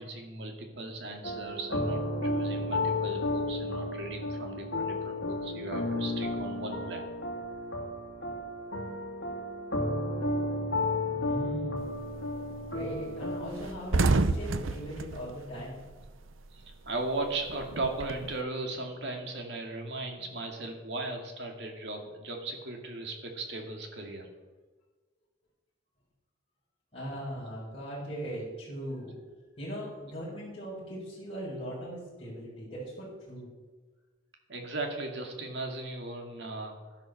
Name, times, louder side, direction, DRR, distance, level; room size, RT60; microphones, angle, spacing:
voice 1, 0.0-7.0 16.5-24.3 34.5-37.0, right 2 dB, 60° right, 3 dB, 2.3 m, -37 dB
sound 1, 1.2-13.5, left 2 dB, 60° left, 2.4 m, -32 dB
voice 2, 11.1-12.0 12.7-15.9 26.9-29.2 29.5-33.5, equal, 30° left, -8 dB, 5.0 m, -39 dB
sound 2, 11.8-12.1 12.5-12.7 12.9-13.1 13.4-16.4 16.7-18.3, right 3 dB, 90° right, 0.7 m, -29 dB
11.5 x 11.0 x 6.7 m, 1.3 s
head